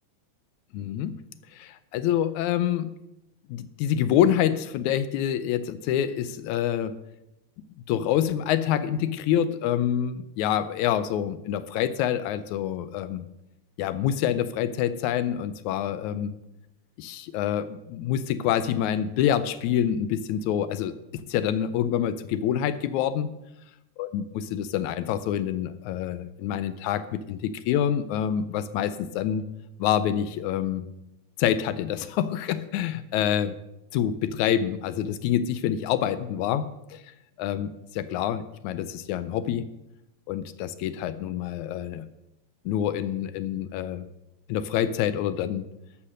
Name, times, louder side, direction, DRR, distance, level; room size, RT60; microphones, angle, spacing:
voice 1, 0.7-1.2 1.5-2.9 3.5-7.0 7.9-13.3 13.8-16.4 17.0-20.9 21.3-23.3 24.0-29.4 29.8-30.9 31.4-33.5 33.9-37.0 37.4-39.7 40.3-42.1 42.7-44.0 44.5-45.7, left 10 dB, 80° left, 13 dB, 1.9 m, -26 dB
13.0 x 5.7 x 6.4 m, 0.89 s
omnidirectional pair, 3.5 m